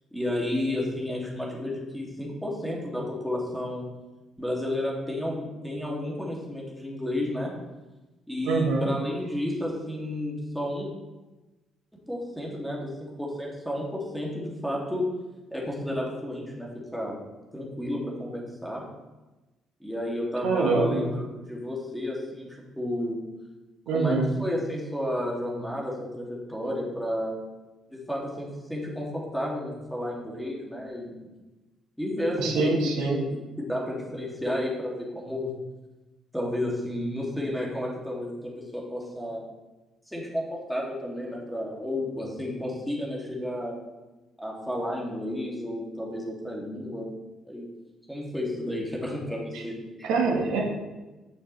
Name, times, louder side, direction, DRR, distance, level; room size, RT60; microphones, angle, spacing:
voice 1, 0.1-3.8 4.4-7.5 8.3-10.9 12.1-12.9 13.2-15.0 15.5-17.1 17.5-18.8 19.8-22.5 22.8-23.2 23.9-27.4 27.9-31.2 32.0-32.7 33.0-35.5 36.3-39.4 40.1-43.7 44.4-47.1 47.5-47.7 48.1-50.1, left 1 dB, ahead, -4 dB, 2.5 m, -32 dB
voice 2, 8.4-8.9 20.4-21.0 23.9-24.3 32.4-33.2 49.5-49.6 50.0-50.6, right 4 dB, 70° right, 1 dB, 1.3 m, -24 dB
9.2 x 6.3 x 3.3 m, 1.1 s
figure-of-eight pair, 45°, 0 cm